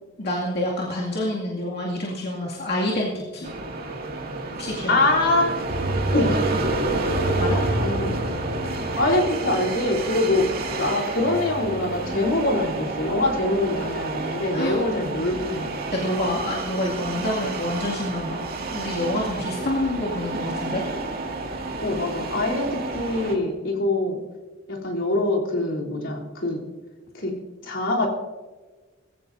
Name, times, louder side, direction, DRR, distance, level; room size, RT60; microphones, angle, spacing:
voice 1, 0.2-3.5 4.6-5.0 7.4-7.6 14.5-14.8 15.9-18.4 18.7-20.8, left 1 dB, 55° left, -5 dB, 2.4 m, -27 dB
sound 1, 3.4-23.3, right 2 dB, 50° right, 2.3 m, -30 dB
voice 2, 4.9-5.6 6.1-6.3 7.7-8.1 9.0-15.7 21.8-24.2 24.7-26.6 27.1-27.3 27.6-28.1, left 2 dB, 75° left, -3 dB, 3.4 m, -24 dB
sound 2, 5.7-10.4 10.7-10.8, right 1 dB, 80° right, 4.5 m, -29 dB
sound 3, 8.9-14.1, right 3 dB, ahead, 4.9 m, -41 dB
21.5 x 15.5 x 2.7 m, 1.3 s
head